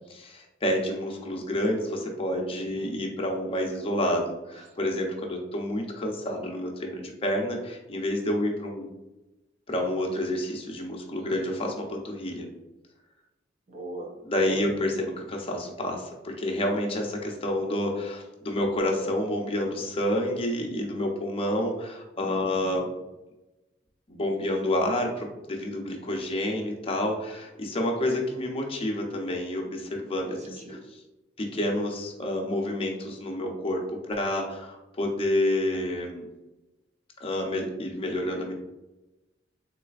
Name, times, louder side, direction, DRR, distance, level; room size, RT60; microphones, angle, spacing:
voice 1, 0.1-8.9 9.7-12.4 14.2-22.9 24.1-31.0 31.4-36.3 37.2-38.5, left 1 dB, 30° left, 1 dB, 0.6 m, -29 dB
voice 2, 2.6-2.9 11.1-11.5 13.7-14.1 14.4-14.6 22.2-22.8 30.3-30.8, right 1 dB, 40° right, 2 dB, 0.6 m, -40 dB
3.8 x 3.1 x 2.4 m, 1.0 s
head